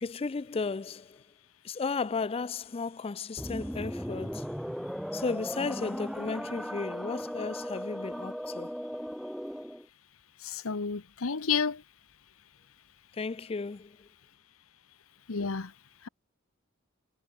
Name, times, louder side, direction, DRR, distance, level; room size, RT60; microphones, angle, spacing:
voice 1, 0.0-1.2 1.6-4.5 5.1-8.7 13.1-14.0, left 4 dB, 25° left, 0.4 m, -34 dB
sound 1, 3.4-9.9, equal, ahead, 1.6 m, -37 dB
voice 2, 10.4-11.8 15.3-15.7, left 5 dB, 85° left, 1.0 m, -30 dB
head